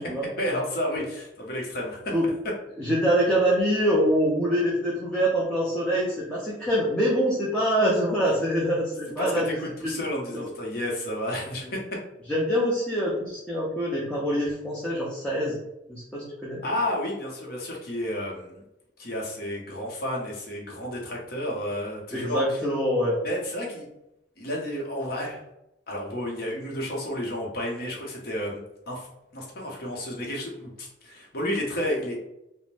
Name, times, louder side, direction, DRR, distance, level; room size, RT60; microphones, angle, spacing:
voice 1, 0.4-2.3 9.2-11.8 16.6-18.6 19.0-22.6 23.2-23.9 24.4-25.4 25.9-28.6 28.9-29.1 29.3-32.2, left 1 dB, 50° left, -2 dB, 0.7 m, -31 dB
voice 2, 2.8-9.6 9.8-9.9 10.3-10.4 12.3-15.6 15.9-16.6 22.1-23.2, equal, 5° left, -7 dB, 0.5 m, -25 dB
2.5 x 2.0 x 3.2 m, 0.86 s
head